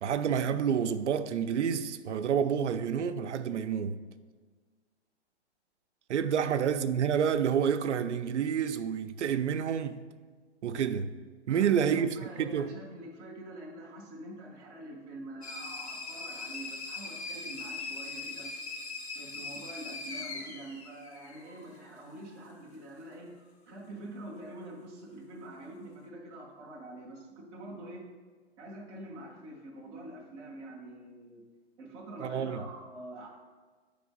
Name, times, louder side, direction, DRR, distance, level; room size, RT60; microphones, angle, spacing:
voice 1, 0.0-4.0 6.1-10.0 10.6-11.1 11.5-12.7 32.2-32.6, right 8 dB, 85° right, 0.5 m, -29 dB
voice 2, 11.5-18.5 19.1-23.4 23.7-28.1 28.6-31.5 31.8-33.4, right 1 dB, 10° right, 0.3 m, -46 dB
sound 1, 15.4-21.8, left 3 dB, 70° left, 1.3 m, -41 dB
8.6 x 3.4 x 3.8 m
hypercardioid pair, 140°, 34 cm